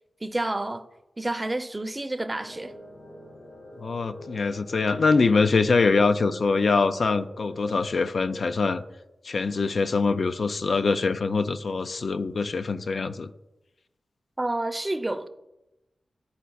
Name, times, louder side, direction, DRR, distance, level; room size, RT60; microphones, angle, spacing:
voice 1, 0.2-0.9 1.2-2.7 14.4-15.3, right 2 dB, 25° right, 0.6 m, -29 dB
sound 1, 2.3-8.7, left 1 dB, 85° left, 2.4 m, -44 dB
voice 2, 3.8-8.8 9.2-13.3, left 4 dB, 70° left, 0.3 m, -24 dB
11.0 x 4.1 x 2.3 m
cardioid pair, 40°, 0 cm